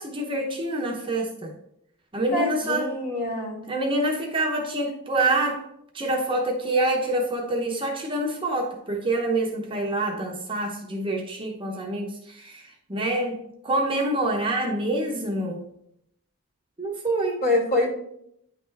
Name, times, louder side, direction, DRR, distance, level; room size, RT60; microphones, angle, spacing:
voice 1, 0.0-1.5 2.1-2.9 3.7-5.7 5.9-12.6 12.9-15.6 16.8-17.4, right 2 dB, 25° right, 0 dB, 0.8 m, -26 dB
voice 2, 2.3-3.6 17.4-17.9, left 1 dB, 45° left, -3 dB, 1.9 m, -25 dB
9.3 x 3.3 x 3.4 m, 0.73 s
head